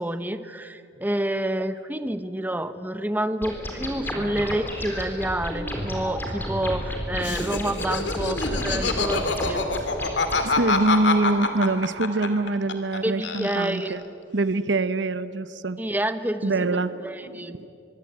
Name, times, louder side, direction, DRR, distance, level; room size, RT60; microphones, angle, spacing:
voice 1, 0.0-9.6 13.0-14.0 15.8-16.7 17.0-17.6, right 1 dB, 10° right, 10 dB, 0.9 m, -28 dB
sound 1, 3.4-10.5, equal, 10° left, 3.9 m, -32 dB
Laughter, 7.2-13.0 13.2-14.0, left 3 dB, 75° left, 2.5 m, -26 dB
voice 2, 10.4-14.0 14.3-15.8 16.4-17.7, right 2 dB, 80° right, 13 dB, 1.0 m, -25 dB
24.5 x 23.5 x 8.8 m, 2.6 s
head